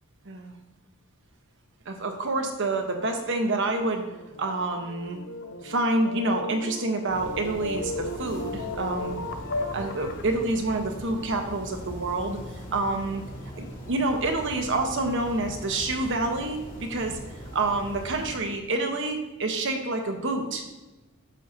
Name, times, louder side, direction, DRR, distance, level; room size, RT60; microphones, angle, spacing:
voice 1, 1.8-4.0 4.4-5.2 5.6-9.2 9.7-12.4 12.7-13.2 13.6-17.2 17.5-20.6, right 2 dB, 60° right, 4 dB, 1.1 m, -28 dB
sound 1, 3.1-10.3, left 2 dB, 60° left, 0.7 m, -36 dB
sound 2, 7.1-18.4, equal, 40° left, 2.4 m, -41 dB
11.5 x 6.5 x 2.8 m, 1.1 s
head